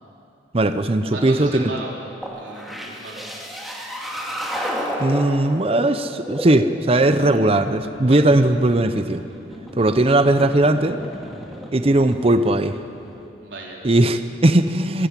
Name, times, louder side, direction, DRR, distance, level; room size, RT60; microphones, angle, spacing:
voice 1, 0.5-1.7 5.0-9.2 9.8-11.0 11.7-12.8 13.8-15.1, right 1 dB, 35° right, 10 dB, 0.7 m, -18 dB
voice 2, 1.1-1.9 2.3-3.2 8.0-8.2 13.4-13.8, right 2 dB, 85° right, -2 dB, 4.0 m, -35 dB
sound 1, 2.2-13.3, equal, ahead, 2.2 m, -33 dB
22.0 x 14.0 x 8.3 m, 2.6 s
head